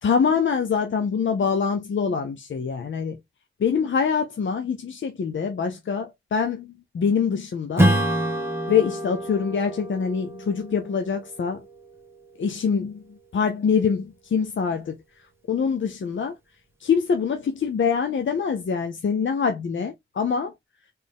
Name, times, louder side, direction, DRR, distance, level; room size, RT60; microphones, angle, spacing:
voice 1, 0.0-3.2 3.6-7.9 8.7-11.6 12.4-13.0 13.3-14.9 15.5-16.3 16.8-20.5, left 6 dB, 70° left, 0.7 m, -24 dB
Strum, 7.8-12.7, equal, 10° right, 1.3 m, -27 dB
4.2 x 3.5 x 3.5 m
wide cardioid pair, 105°, 20 cm